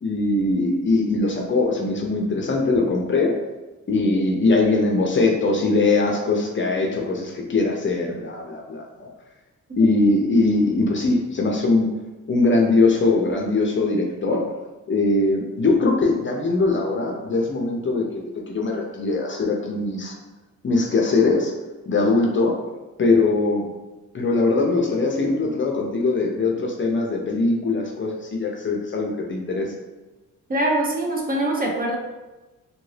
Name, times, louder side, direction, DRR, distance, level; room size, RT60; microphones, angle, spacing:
voice 1, 0.0-3.3 3.9-9.1 9.8-11.9 12.3-14.4 14.9-20.1 20.6-21.5 21.9-22.6 23.0-23.7 24.1-29.7, left 3 dB, 35° left, 0 dB, 0.6 m, -21 dB
voice 2, 30.5-32.0, right 1 dB, 25° right, -1 dB, 0.5 m, -23 dB
2.8 x 2.6 x 3.2 m, 1.1 s
cardioid pair, 105°, 33 cm